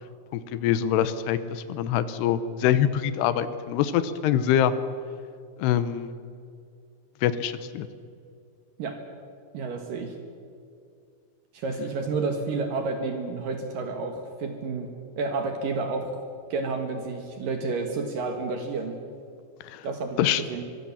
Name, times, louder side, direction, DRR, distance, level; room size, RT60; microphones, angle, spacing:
voice 1, 0.3-4.7 5.6-6.1 7.2-7.9 19.6-19.9 20.2-20.4, left 10 dB, 85° left, 12 dB, 3.1 m, -24 dB
voice 2, 9.5-10.1 11.5-14.9 15.2-16.2 16.5-19.0 19.8-20.7, right 3 dB, 65° right, 5 dB, 3.1 m, -30 dB
24.5 x 22.5 x 7.3 m, 2.3 s
omnidirectional pair, 4.6 m